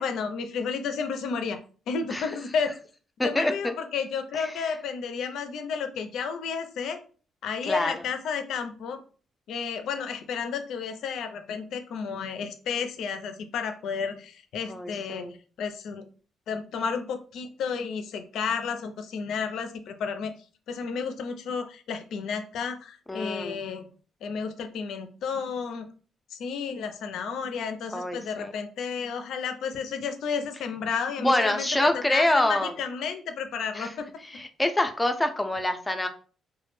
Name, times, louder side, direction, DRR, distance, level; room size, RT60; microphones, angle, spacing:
voice 1, 0.0-1.6 1.9-2.7 3.2-7.0 7.4-9.0 9.5-15.3 15.6-16.1 16.5-20.3 20.7-23.9 24.2-25.9 26.3-34.1, left 6 dB, 75° left, 8 dB, 0.4 m, -32 dB
voice 2, 3.2-3.7 4.4-4.5 7.6-7.9 14.7-15.3 23.1-23.6 27.9-28.5 31.2-32.7 33.8-33.9 34.3-36.1, left 1 dB, 15° left, 7 dB, 0.4 m, -26 dB
2.1 x 2.0 x 3.0 m, 0.39 s
cardioid pair, 90°, 0 cm